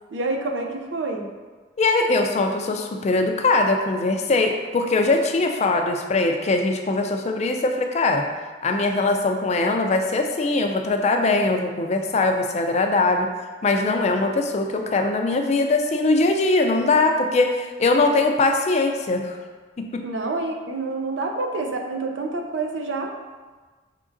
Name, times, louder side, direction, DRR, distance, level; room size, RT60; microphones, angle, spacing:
voice 1, 0.1-1.3 20.0-23.1, right 3 dB, 80° right, 2 dB, 0.6 m, -27 dB
voice 2, 1.8-8.3 8.6-13.3 13.6-19.4 19.8-20.0, left 3 dB, 35° left, 4 dB, 0.4 m, -21 dB
4.9 x 3.7 x 2.5 m, 1.4 s
head